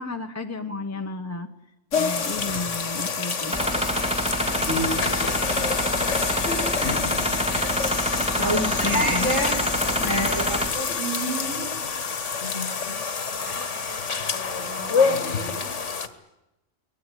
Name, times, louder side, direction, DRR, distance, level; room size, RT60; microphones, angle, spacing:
voice 1, 0.0-1.5 1.9-3.6 8.2-9.3 10.0-10.3, left 3 dB, 15° left, 5 dB, 1.0 m, -32 dB
sound 1, 1.9-16.1, left 5 dB, 65° left, 1.7 m, -27 dB
sound 2, 3.5-10.7, equal, 5° right, 1.8 m, -27 dB
voice 2, 8.4-9.6 10.0-11.7 13.4-14.0 14.3-15.7, right 1 dB, 75° right, 1 dB, 6.9 m, -29 dB
24.0 x 19.0 x 9.9 m, 0.96 s
omnidirectional pair, 1.4 m